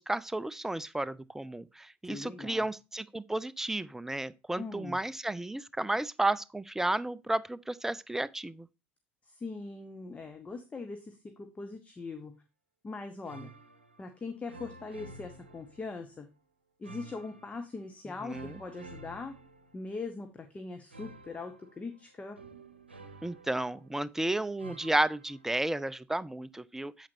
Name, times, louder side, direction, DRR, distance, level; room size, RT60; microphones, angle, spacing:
voice 1, 0.0-8.7 18.2-18.6 23.2-27.1, right 2 dB, 5° right, 0.4 m, -32 dB
voice 2, 2.1-2.7 4.6-5.0 9.3-12.3 12.8-13.5 14.0-16.3 16.8-19.3 19.7-22.4, left 3 dB, 25° left, 1.1 m, -41 dB
sound 1, 13.2-14.2 14.5-16.2 16.8-17.8 18.3-20.2 20.9-24.1 24.6-25.5, right 2 dB, 85° right, 0.8 m, -51 dB
8.6 x 7.8 x 2.7 m
figure-of-eight pair, 60°, 6 cm